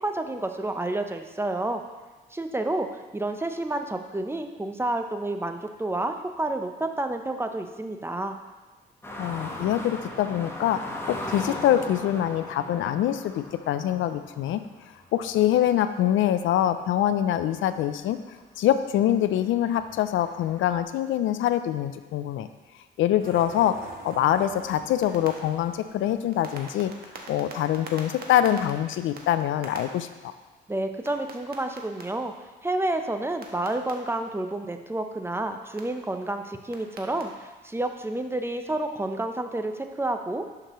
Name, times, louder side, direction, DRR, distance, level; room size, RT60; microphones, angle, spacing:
voice 1, 0.0-1.8 2.3-8.4 30.7-32.3 32.6-40.5, right 2 dB, 10° right, 6 dB, 0.6 m, -30 dB
sound 1, 9.0-18.1 18.5-18.6 19.1-20.8, left 1 dB, 10° left, 1.2 m, -39 dB
voice 2, 9.2-14.6 15.1-18.2 18.6-22.5 23.0-26.9 27.3-30.3, left 11 dB, 80° left, 11 dB, 0.5 m, -24 dB
sound 2, 23.2-29.8 31.0-32.0 33.4-33.9 35.8-35.9 36.7-37.2, right 4 dB, 50° right, 1.4 m, -43 dB
11.5 x 5.9 x 3.1 m, 1.2 s
cardioid pair, 90°, 20 cm